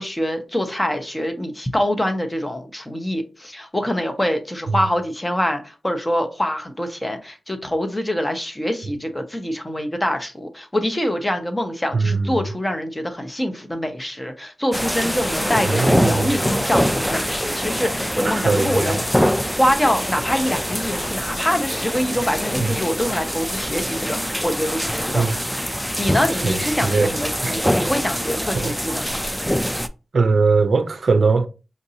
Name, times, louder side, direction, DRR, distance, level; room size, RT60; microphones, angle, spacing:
voice 1, 0.0-25.3 26.0-29.2, equal, 15° left, 0.8 m, -25 dB
voice 2, 11.9-12.3 15.6-16.5 18.4-19.0 22.6-22.7 25.1-25.3 26.4-27.1 27.4-27.6 28.6-28.7 30.1-31.5, right 4 dB, 60° right, 0.5 m, -20 dB
sound 1, 14.7-29.9, equal, ahead, 0.3 m, -24 dB
5.2 x 2.6 x 2.7 m
cardioid pair, 60°, 0 cm